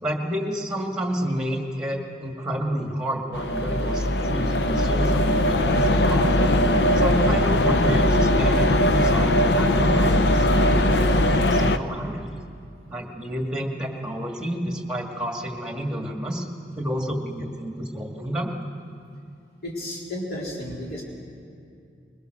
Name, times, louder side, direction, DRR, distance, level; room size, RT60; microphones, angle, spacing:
voice 1, 0.0-6.5 6.9-12.3 12.9-16.5 16.8-18.5, equal, 5° right, 1 dB, 2.0 m, -30 dB
sound 1, 3.3-11.8, left 1 dB, 70° left, 0.8 m, -20 dB
voice 2, 19.6-21.0, left 1 dB, 55° left, -4 dB, 4.0 m, -32 dB
22.0 x 21.0 x 6.6 m, 2.5 s
head